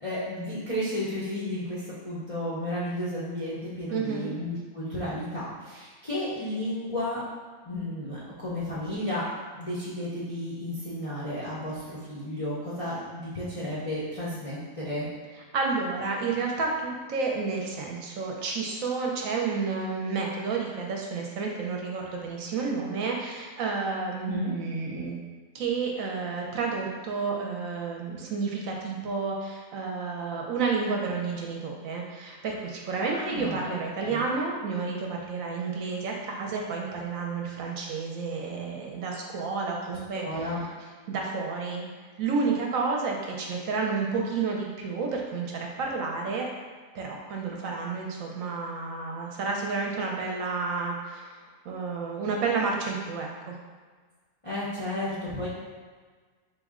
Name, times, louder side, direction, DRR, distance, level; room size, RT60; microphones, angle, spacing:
voice 1, 0.0-7.2 7.6-9.3 9.5-15.1 24.2-24.5 33.1-34.2 40.1-40.6 54.4-55.5, left 1 dB, 45° left, -9 dB, 0.4 m, -33 dB
voice 2, 3.9-4.3 15.4-25.2 25.5-40.5 41.1-41.8 42.2-46.5 46.9-53.6, right 4 dB, 70° right, -1 dB, 0.9 m, -30 dB
4.7 x 2.1 x 3.6 m, 1.5 s
omnidirectional pair, 1.6 m